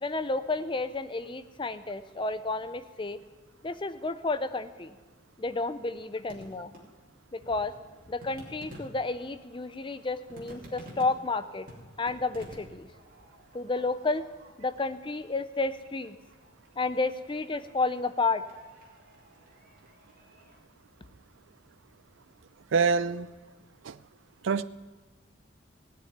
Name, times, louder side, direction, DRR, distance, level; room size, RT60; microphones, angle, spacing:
voice 1, 0.0-3.2 3.6-5.0 5.4-6.7 7.3-7.7 8.1-11.7 12.0-12.9 13.5-14.3 14.6-16.2 16.8-18.4, left 3 dB, 25° left, 12 dB, 0.5 m, -31 dB
sound 1, 5.5-20.6, equal, 40° right, 2.7 m, -52 dB
voice 2, 22.7-23.3 23.8-24.0 24.4-24.6, right 5 dB, 65° right, 15 dB, 0.4 m, -25 dB
17.0 x 6.6 x 9.3 m, 1.3 s
head